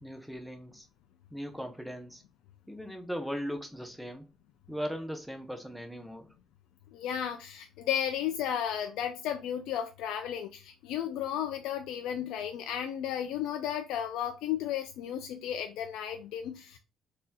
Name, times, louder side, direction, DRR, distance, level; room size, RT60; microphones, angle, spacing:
voice 1, 0.0-0.9 1.3-2.2 2.7-4.3 4.7-6.3, equal, ahead, 0.6 m, -38 dB
voice 2, 6.9-16.8, left 10 dB, 90° left, 0.3 m, -34 dB
3.9 x 2.7 x 2.2 m
cardioid pair, 140°, 0 cm